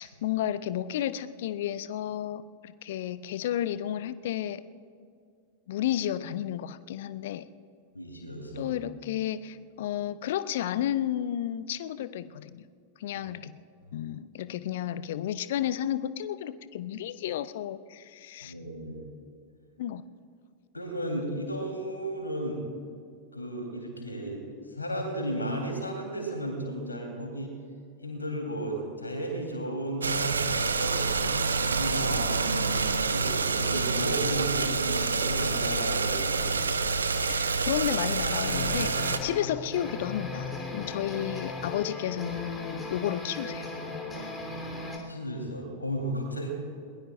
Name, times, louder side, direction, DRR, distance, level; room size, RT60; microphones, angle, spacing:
voice 1, 0.0-4.6 5.7-7.4 8.6-12.6 13.0-13.6 13.9-18.5 19.8-20.0 37.3-43.7, left 11 dB, 55° left, 15 dB, 0.6 m, -32 dB
voice 2, 7.9-8.7 18.4-18.9 20.7-22.6 23.3-24.4 24.7-27.5 28.0-31.4 31.7-36.5 45.1-46.5, right 1 dB, 80° left, 2 dB, 3.6 m, -34 dB
sound 1, 30.0-39.2, right 4 dB, 75° right, 0.8 m, -27 dB
sound 2, 38.4-45.0, left 3 dB, 15° left, 3.3 m, -37 dB
21.5 x 21.0 x 2.5 m, 2.3 s
figure-of-eight pair, 90°, 0 cm